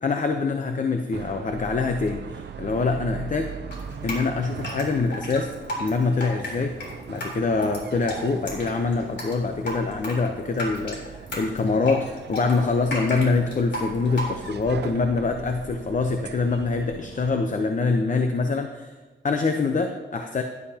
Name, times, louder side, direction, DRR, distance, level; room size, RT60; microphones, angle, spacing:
voice 1, 0.0-3.5 4.0-5.5 5.8-6.8 7.1-18.9 19.2-20.4, left 4 dB, 40° left, 5 dB, 0.8 m, -25 dB
sound 1, 1.1-17.4, right 7 dB, 65° right, 0.6 m, -40 dB
Drip, 3.7-14.7, left 1 dB, 65° left, 3.7 m, -34 dB
16.0 x 11.0 x 2.9 m, 1.3 s
wide cardioid pair, 120°, 19 cm